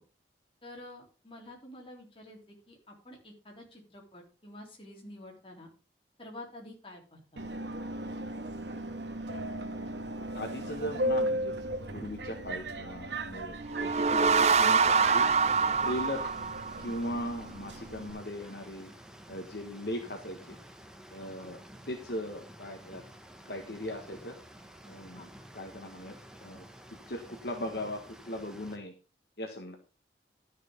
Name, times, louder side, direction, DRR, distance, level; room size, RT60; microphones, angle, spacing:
voice 1, 0.6-2.4 2.7-5.7 6.2-7.4 21.4-21.5 25.1-25.3, left 1 dB, 30° left, 0 dB, 3.5 m, -49 dB
Subway metro underground, 7.4-18.1, right 1 dB, 80° right, 1.5 m, -37 dB
voice 2, 9.6-9.9 10.3-11.5 11.9-15.2 15.8-16.2 16.8-18.9 19.3-20.6 21.1-21.6 21.9-23.0 23.5-24.4 24.9-25.3 25.5-26.1 26.4-26.6 27.1-28.9 29.4-29.8, left 1 dB, 65° left, 3 dB, 1.6 m, -38 dB
sound 1, 13.6-17.1, right 5 dB, 40° right, 0.5 m, -25 dB
sound 2, 14.8-28.8, equal, 5° right, 1.2 m, -51 dB
12.5 x 6.5 x 5.2 m, 0.34 s
head